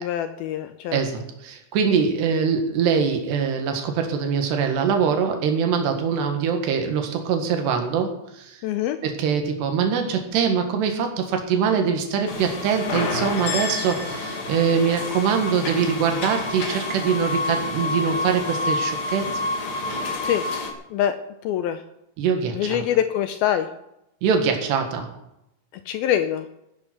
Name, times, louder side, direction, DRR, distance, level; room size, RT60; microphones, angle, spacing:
voice 1, 0.0-1.0 8.6-9.0 20.2-20.4 20.9-21.2 21.4-21.8 22.5-23.7 25.9-26.5, left 10 dB, 80° left, 10 dB, 2.4 m, -24 dB
voice 2, 0.9-8.6 9.0-19.3 22.2-22.8 24.2-25.1, right 6 dB, 90° right, 4 dB, 3.9 m, -23 dB
sound 1, 12.3-20.7, left 2 dB, 40° left, 2.3 m, -28 dB
16.0 x 11.0 x 6.0 m, 0.84 s
omnidirectional pair, 4.7 m